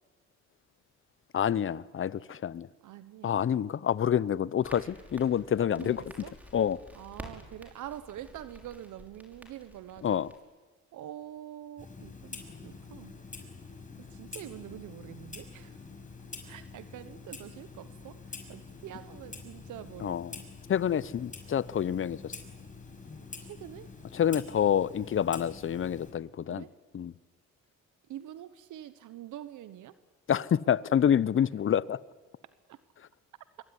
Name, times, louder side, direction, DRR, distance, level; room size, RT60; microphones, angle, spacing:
voice 1, 1.3-2.7 3.2-6.0 6.5-6.8 10.0-10.3 20.0-20.4 20.7-22.4 24.1-26.6 26.9-27.1 30.3-32.0, left 9 dB, 45° left, 0.8 m, -27 dB
voice 2, 2.8-3.5 5.7-6.3 6.9-10.2 10.9-13.2 14.0-15.8 16.4-20.4 23.4-23.9 26.5-26.7 28.1-30.0 32.7-32.8, right 12 dB, 80° right, 1.1 m, -45 dB
Crackle, 4.6-10.4, equal, 5° right, 5.9 m, -50 dB
Clock, 11.8-26.1, left 4 dB, 25° left, 5.7 m, -46 dB
25.5 x 22.5 x 10.0 m
cardioid pair, 90°, 30 cm